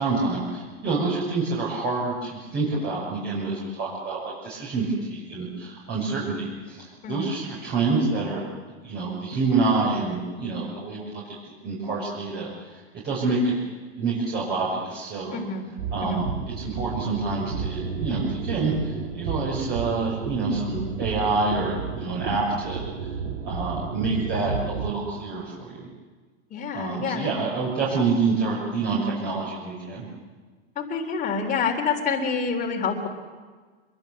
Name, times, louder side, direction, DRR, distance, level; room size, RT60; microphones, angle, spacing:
voice 1, 0.0-8.4 8.8-11.3 11.6-13.5 14.0-15.4 15.9-16.3 16.6-23.2 23.4-25.9 26.7-30.1, right 3 dB, 25° right, -4 dB, 6.2 m, -27 dB
voice 2, 15.3-15.6 16.0-16.2 26.5-27.3 30.8-33.1, left 5 dB, 20° left, 1 dB, 3.7 m, -27 dB
sound 1, 15.8-24.9, right 6 dB, 70° right, 3.2 m, -32 dB
26.0 x 22.5 x 7.9 m, 1.4 s
hypercardioid pair, 135°, 36 cm